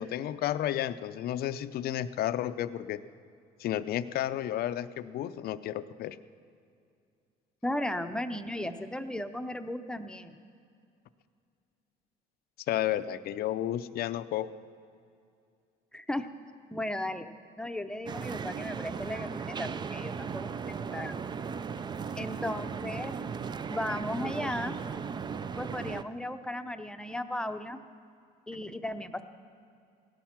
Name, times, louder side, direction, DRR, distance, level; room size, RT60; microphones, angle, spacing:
voice 1, 0.0-3.0 3.6-6.2 12.7-14.5, left 12 dB, 65° left, 13 dB, 0.5 m, -32 dB
voice 2, 7.6-10.4 15.9-16.3 16.7-17.3 17.6-21.2 22.1-23.1 23.7-24.8 25.6-27.8 28.5-29.2, left 1 dB, 5° left, 8 dB, 0.7 m, -35 dB
sound 1, 18.1-26.0, right 6 dB, 25° right, 0.4 m, -37 dB
16.5 x 12.0 x 5.9 m, 2.4 s
cardioid pair, 110°, 17 cm